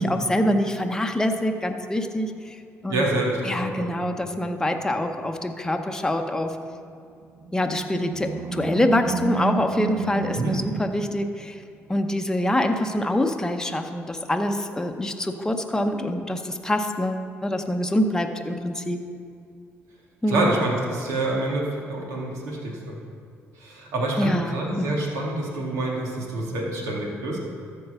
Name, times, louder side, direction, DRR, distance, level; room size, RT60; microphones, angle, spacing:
voice 1, 0.0-2.6 2.8-3.1 3.4-6.6 7.5-11.6 11.9-19.0 20.2-20.5 24.2-25.0, left 1 dB, 10° left, 5 dB, 0.9 m, -25 dB
voice 2, 2.9-3.9 10.4-10.5 20.3-23.0 23.6-27.4, right 2 dB, 85° right, -2 dB, 2.3 m, -27 dB
Animal, 7.3-11.8, right 5 dB, 55° right, 0.6 m, -31 dB
13.5 x 4.6 x 6.8 m, 2.3 s
cardioid pair, 85°, 5 cm